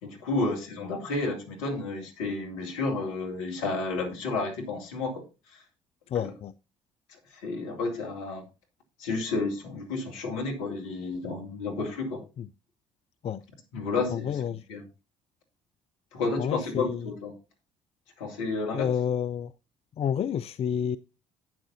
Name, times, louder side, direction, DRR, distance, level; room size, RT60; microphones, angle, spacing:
voice 1, 0.0-5.6 6.2-6.3 7.3-8.4 9.0-12.2 13.7-14.4 14.7-14.8 16.1-17.3 18.2-18.9, left 3 dB, 70° left, 2.4 m, -31 dB
voice 2, 6.1-6.5 12.4-12.5 13.2-13.4 14.1-14.6 16.4-17.1 18.7-19.5 20.0-21.0, left 8 dB, 35° left, 0.4 m, -29 dB
12.0 x 9.1 x 2.7 m
figure-of-eight pair, 50°, 17 cm